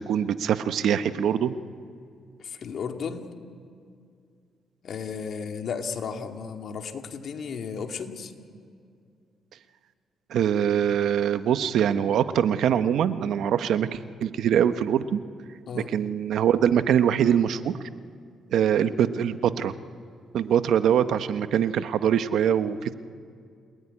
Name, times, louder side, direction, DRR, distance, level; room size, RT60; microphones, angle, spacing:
voice 1, 0.1-1.5 10.3-15.2 15.7-17.7 18.5-19.7 20.3-22.9, right 9 dB, 75° right, 11 dB, 1.0 m, -23 dB
voice 2, 2.4-3.3 4.8-8.3 15.7-15.9, left 6 dB, 60° left, 4 dB, 2.3 m, -34 dB
29.5 x 19.0 x 9.9 m, 2.3 s
cardioid pair, 90°, 0 cm